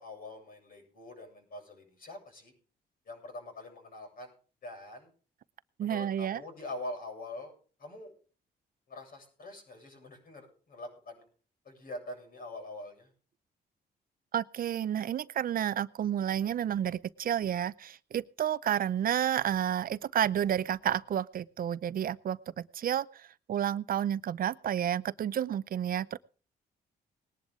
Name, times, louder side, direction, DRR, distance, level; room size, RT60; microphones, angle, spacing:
voice 1, 0.0-2.5 3.0-4.3 4.6-5.1 5.8-7.5 7.8-8.1 8.9-11.3 11.6-13.1, left 2 dB, 55° left, 7.6 m, -44 dB
voice 2, 5.8-6.4 14.3-26.2, right 10 dB, 55° right, 0.6 m, -31 dB
20.0 x 10.5 x 3.7 m
cardioid pair, 85°, 17 cm